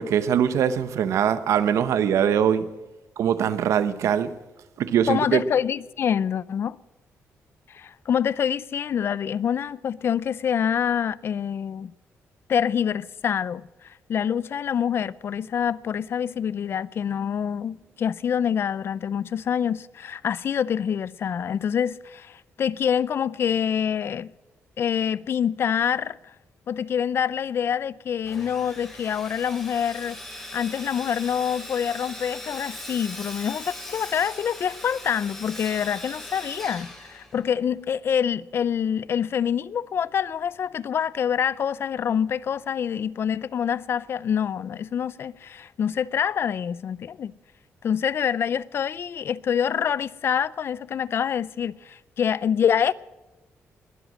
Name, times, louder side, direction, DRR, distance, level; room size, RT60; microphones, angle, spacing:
voice 1, 0.0-2.7 3.2-4.3 4.8-5.4, right 8 dB, 80° right, 0.9 m, -22 dB
voice 2, 5.1-6.8 7.7-11.9 12.5-24.3 24.8-26.2 26.7-30.2 30.5-47.3 47.8-52.9, left 8 dB, 50° left, 0.4 m, -26 dB
Sawing, 28.2-37.7, left 1 dB, 5° left, 4.4 m, -40 dB
21.0 x 7.9 x 7.6 m
cardioid pair, 135°, 5 cm